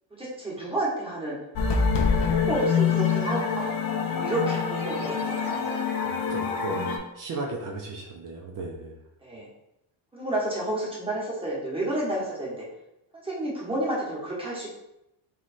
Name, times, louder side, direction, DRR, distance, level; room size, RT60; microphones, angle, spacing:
voice 1, 0.2-1.4 2.1-3.7 4.1-5.8 9.2-9.5 10.1-12.7 13.1-14.7, right 1 dB, 10° right, -5 dB, 1.1 m, -30 dB
sound 1, 1.6-7.0, left 6 dB, 45° left, 0.6 m, -26 dB
voice 2, 6.0-9.0, right 2 dB, 40° right, 0 dB, 0.6 m, -35 dB
3.2 x 3.2 x 4.1 m, 0.85 s
cardioid pair, 165°, 49 cm